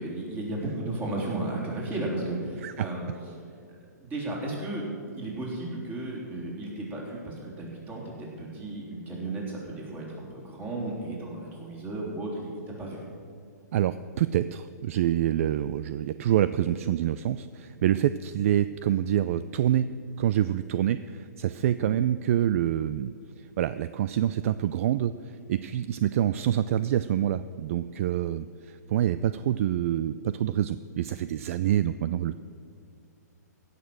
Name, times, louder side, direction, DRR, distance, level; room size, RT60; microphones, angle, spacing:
voice 1, 0.0-3.1 4.0-4.8 5.1-12.5 12.8-13.0 21.8-21.9, right 2 dB, 20° right, -3 dB, 3.7 m, -34 dB
voice 2, 13.7-19.9 20.2-23.1 23.4-32.3, right 11 dB, 50° right, 14 dB, 0.4 m, -26 dB
16.0 x 6.7 x 7.7 m, 2.3 s
hypercardioid pair, 135°, 10 cm